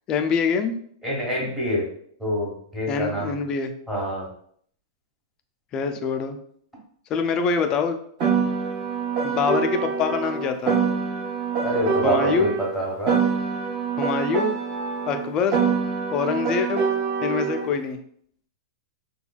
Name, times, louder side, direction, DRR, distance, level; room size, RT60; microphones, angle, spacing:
voice 1, 0.1-0.8 2.9-3.7 5.7-6.4 7.1-8.0 9.2-10.8 12.0-12.5 14.0-14.5 15.1-15.6 16.1-16.8 17.2-18.0, left 6 dB, 30° left, 7 dB, 0.3 m, -24 dB
voice 2, 1.0-1.9 2.2-3.3 3.9-4.3 11.6-13.2, equal, 10° right, -5 dB, 1.2 m, -26 dB
Piano, 8.2-12.7 13.1-17.7, right 6 dB, 35° right, 0.9 m, -25 dB
3.1 x 2.3 x 2.3 m, 0.63 s
hypercardioid pair, 120°, 2 cm